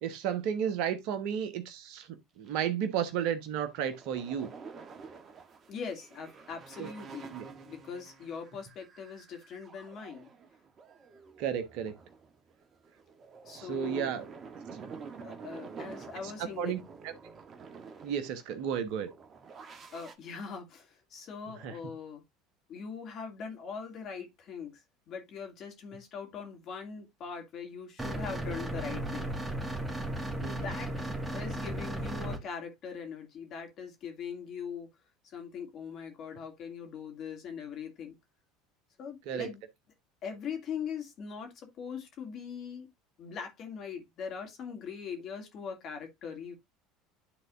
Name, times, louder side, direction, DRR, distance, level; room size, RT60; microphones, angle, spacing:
voice 1, 0.0-4.5 6.8-6.9 7.3-7.4 11.4-11.9 13.5-14.2 14.8-14.9 16.6-16.8 17.0-17.1 18.0-19.1 21.6-21.7 30.4-30.7 39.3-39.5, right 8 dB, 60° right, 1.2 m, -33 dB
sound 1, 2.5-2.6 2.9-20.1, right 5 dB, 35° right, 1.2 m, -49 dB
voice 2, 5.7-7.3 7.6-10.3 13.4-14.1 15.2-16.8 19.9-22.2 22.7-24.8 25.1-29.3 30.5-30.9 31.3-34.9 35.2-38.2 39.0-39.6 40.2-42.9 43.2-46.5, left 6 dB, 50° left, 2.5 m, -41 dB
sound 2, 28.0-32.4, right 1 dB, 15° right, 1.8 m, -35 dB
12.0 x 3.9 x 2.5 m
hypercardioid pair, 70°, 0 cm